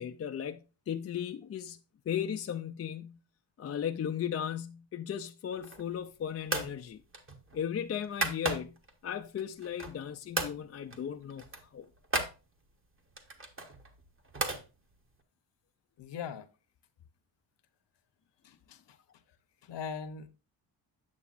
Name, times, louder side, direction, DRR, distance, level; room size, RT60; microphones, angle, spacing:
voice 1, 0.0-3.2 3.6-7.0 7.5-11.5 11.7-11.9, left 9 dB, 35° left, 0.4 m, -36 dB
sound 1, 5.5-6.0 6.5-6.8 7.1-8.9 9.4-10.1 10.3-10.6 10.9-11.1 11.3-12.4 13.1-14.6, right 2 dB, 25° right, 1.1 m, -35 dB
voice 2, 16.0-16.5 18.4-18.8 19.6-20.3, left 6 dB, 65° left, 0.9 m, -40 dB
8.5 x 6.8 x 2.5 m
cardioid pair, 90°, 46 cm